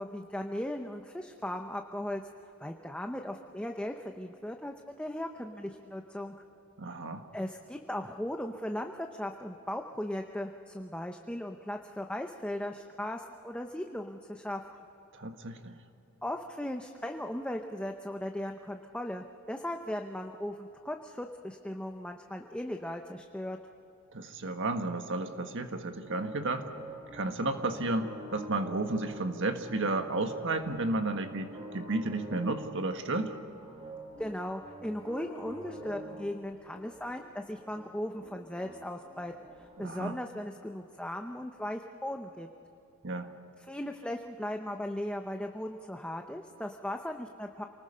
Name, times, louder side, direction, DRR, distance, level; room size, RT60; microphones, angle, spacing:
voice 1, 0.0-2.2 2.6-6.3 7.3-14.8 16.2-23.6 34.2-39.3 39.6-42.5 43.6-47.6, left 1 dB, 5° left, 4 dB, 0.8 m, -37 dB
voice 2, 6.8-7.3 15.1-15.7 24.1-26.7 27.1-33.4 39.8-40.2 43.0-43.3, right 2 dB, 60° right, 6 dB, 1.6 m, -32 dB
sound 1, 26.0-40.1, right 1 dB, 25° right, 1.9 m, -47 dB
28.5 x 20.0 x 5.6 m, 2.9 s
head